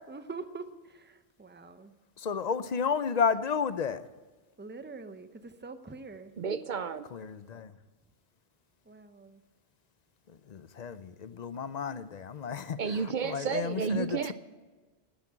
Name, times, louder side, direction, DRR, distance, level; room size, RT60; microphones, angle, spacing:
voice 1, 0.1-1.9 4.6-6.3 8.9-9.4, right 3 dB, 10° right, 10 dB, 0.6 m, -44 dB
voice 2, 2.2-4.0 7.1-7.7 10.3-12.8 13.2-14.3, left 6 dB, 50° left, 14 dB, 0.6 m, -32 dB
voice 3, 6.4-7.1 12.8-14.3, right 5 dB, 55° right, 13 dB, 0.7 m, -31 dB
11.0 x 9.9 x 8.7 m, 1.3 s
omnidirectional pair, 1.1 m